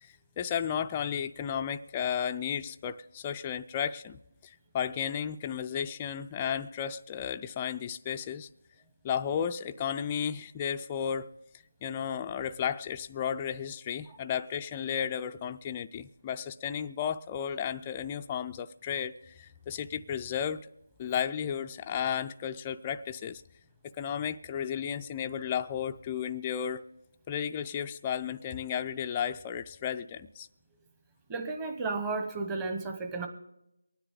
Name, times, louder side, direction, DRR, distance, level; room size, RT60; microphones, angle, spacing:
voice 1, 0.0-8.5 9.0-11.4 11.8-20.7 21.0-23.4 24.0-26.9 27.3-30.5, left 8 dB, 20° left, 7 dB, 0.4 m, -33 dB
voice 2, 31.3-33.3, right 3 dB, 10° right, 5 dB, 1.1 m, -33 dB
23.5 x 9.9 x 3.7 m, 0.86 s
figure-of-eight pair, 165°, 0 cm